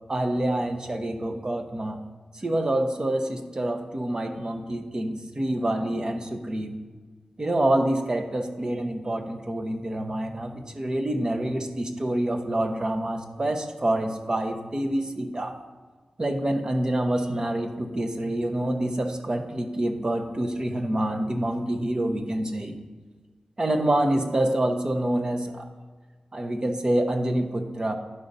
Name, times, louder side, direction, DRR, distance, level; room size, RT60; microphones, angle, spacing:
voice 1, 0.1-2.0 2.3-6.8 7.4-15.6 16.2-22.8 23.6-25.7 26.3-27.9, right 1 dB, 35° right, 6 dB, 0.8 m, -27 dB
11.0 x 3.9 x 5.4 m, 1.4 s
wide cardioid pair, 90°, 2 cm